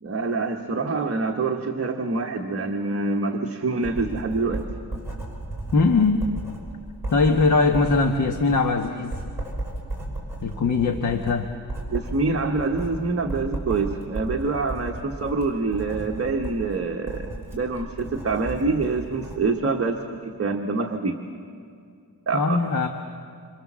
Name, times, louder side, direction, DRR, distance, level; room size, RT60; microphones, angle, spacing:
voice 1, 0.0-4.6 11.9-20.0 20.2-21.2 22.3-22.6, right 3 dB, 35° right, 2 dB, 1.3 m, -26 dB
Writing, 3.8-19.4, right 2 dB, 5° right, 5.9 m, -35 dB
voice 2, 5.7-6.3 7.1-9.2 10.4-11.5 22.3-22.9, left 4 dB, 50° left, 5 dB, 1.3 m, -21 dB
27.5 x 26.5 x 7.4 m, 2.4 s
wide cardioid pair, 175°, 38 cm